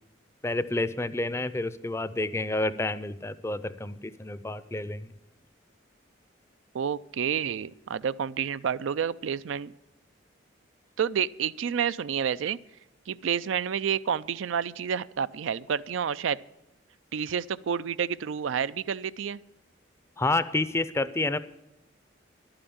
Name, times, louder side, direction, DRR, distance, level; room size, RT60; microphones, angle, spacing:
voice 1, 0.4-5.1 20.2-21.4, left 2 dB, 15° left, 15 dB, 0.5 m, -29 dB
voice 2, 6.7-9.7 11.0-12.6 13.1-16.4 17.1-19.4, right 7 dB, 85° right, 16 dB, 0.4 m, -29 dB
11.5 x 8.9 x 8.6 m, 0.88 s
head